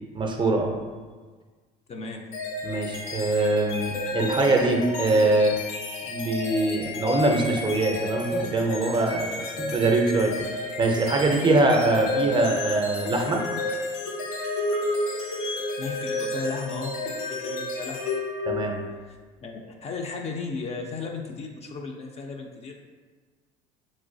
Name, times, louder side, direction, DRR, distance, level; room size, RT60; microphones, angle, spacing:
voice 1, 0.1-0.8 2.6-5.6 6.1-10.3 10.8-13.4 18.5-18.8, right 2 dB, 25° right, 2 dB, 0.5 m, -23 dB
voice 2, 1.9-2.3 15.8-18.1 19.1-22.7, left 4 dB, 35° left, 2 dB, 0.4 m, -35 dB
sound 1, 2.3-19.0, left 2 dB, 85° left, 0.6 m, -31 dB
3.0 x 2.9 x 2.6 m, 1.4 s
supercardioid pair, 90°, 19 cm